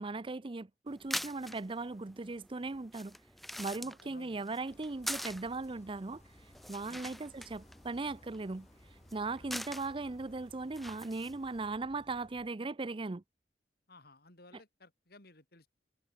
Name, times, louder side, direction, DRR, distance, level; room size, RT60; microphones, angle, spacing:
voice 1, 0.0-3.2 3.6-6.2 6.7-8.7 9.1-13.2, right 3 dB, 30° right, 0.6 m, -38 dB
sound 1, 0.9-11.6, equal, ahead, 2.9 m, -45 dB
voice 2, 3.8-4.4 6.9-7.0 9.4-9.6 13.9-15.7, left 2 dB, 60° left, 5.3 m, -58 dB
sound 2, 4.7-12.5, left 1 dB, 40° left, 4.2 m, -60 dB
head